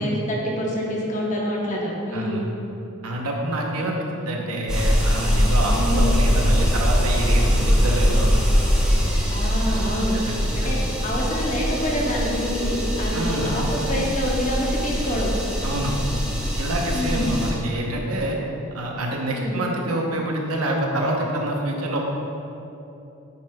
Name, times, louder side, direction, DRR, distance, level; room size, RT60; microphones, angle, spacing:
voice 1, 0.0-2.5 5.7-6.0 9.3-10.1 10.5-15.3 16.9-17.3 19.3-19.6, equal, 35° left, -3 dB, 0.9 m, -27 dB
voice 2, 2.1-2.5 3.0-8.3 9.7-9.8 10.1-10.3 10.6-10.7 13.1-13.6 15.6-16.0 16.6-18.4 18.7-22.1, right 1 dB, 90° right, 0 dB, 0.8 m, -26 dB
sound 1, 4.7-17.5, equal, 5° right, 0.6 m, -22 dB
8.2 x 5.3 x 2.2 m, 2.9 s
head